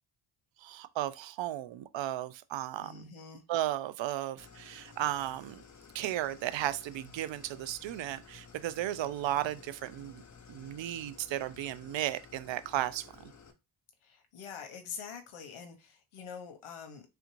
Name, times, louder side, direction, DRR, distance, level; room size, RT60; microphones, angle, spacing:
voice 1, 0.6-3.1 3.5-5.6 5.9-10.2 10.5-13.3, right 13 dB, 65° right, 0.5 m, -35 dB
voice 2, 2.8-3.4 14.0-17.0, left 6 dB, 75° left, 0.8 m, -45 dB
Idling, 4.4-13.5, left 5 dB, 35° left, 0.7 m, -54 dB
3.5 x 2.5 x 3.0 m
cardioid pair, 65°, 50 cm